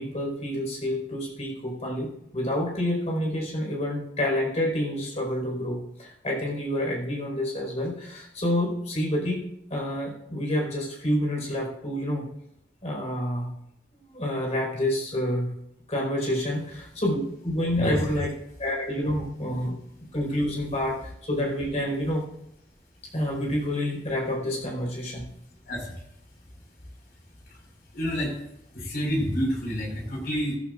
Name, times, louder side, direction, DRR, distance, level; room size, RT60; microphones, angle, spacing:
voice 1, 0.0-9.4 9.7-12.3 12.8-13.5 13.9-15.5 15.9-18.3 18.6-19.8 20.1-22.2 23.1-25.2, left 1 dB, 35° left, -1 dB, 4.7 m, -28 dB
voice 2, 17.8-18.2 25.6-26.0 27.4-27.6 27.9-28.4 28.7-30.6, equal, 55° left, 0 dB, 5.2 m, -29 dB
15.5 x 14.5 x 2.5 m, 0.78 s
head